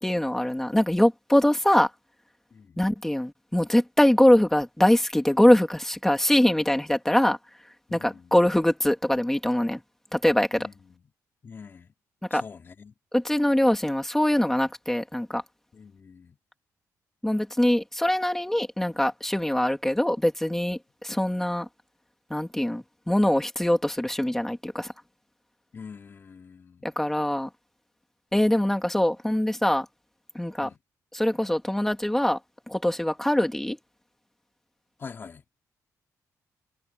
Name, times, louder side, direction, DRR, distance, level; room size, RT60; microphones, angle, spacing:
voice 1, 0.0-1.9 2.8-7.4 7.9-9.8 10.1-10.7 12.3-12.4 13.1-15.4 17.2-21.7 22.3-24.9 26.8-27.5 28.3-29.9 30.3-30.7 31.1-32.4 32.7-33.8, left 1 dB, 5° left, 2.3 m, -23 dB
voice 2, 2.5-2.8 7.9-8.3 10.5-11.0 11.4-11.9 12.3-12.9 15.7-16.4 25.7-26.9 30.6-30.8 35.0-35.4, left 5 dB, 35° left, 3.4 m, -45 dB
cardioid pair, 135°, 6 cm